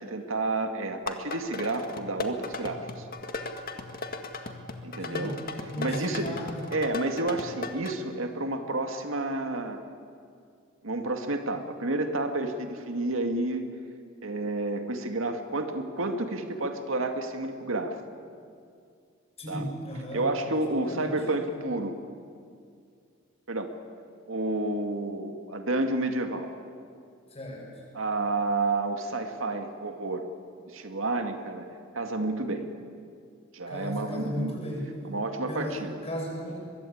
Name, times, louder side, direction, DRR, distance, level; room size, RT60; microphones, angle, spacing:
voice 1, 0.0-3.1 4.8-5.4 5.8-6.4 6.7-9.8 10.8-13.6 14.2-18.0 19.5-19.7 20.1-21.9 23.5-23.7 24.3-26.5 27.9-30.2 30.7-31.7 31.9-32.7 33.5-34.5 35.1-36.0, right 2 dB, 75° right, 5 dB, 2.1 m, -30 dB
sound 1, 0.9-7.9, left 3 dB, 45° left, 1.9 m, -37 dB
voice 2, 5.7-6.6 19.4-20.3 20.9-21.2 27.3-27.6 33.7-34.9 35.5-36.6, equal, 30° left, -1 dB, 7.4 m, -35 dB
23.0 x 23.0 x 8.7 m, 2.3 s
head